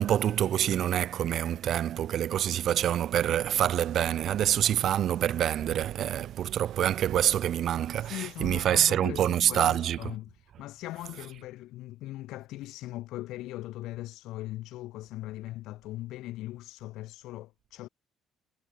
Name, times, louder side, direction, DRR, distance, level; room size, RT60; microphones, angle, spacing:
voice 1, 0.0-10.0, right 10 dB, 60° right, 0.7 m, -26 dB
sound 1, 3.1-8.1, right 15 dB, 75° right, 5.7 m, -45 dB
voice 2, 8.0-17.9, left 16 dB, 80° left, 2.5 m, -40 dB
cardioid pair, 100°, 0 cm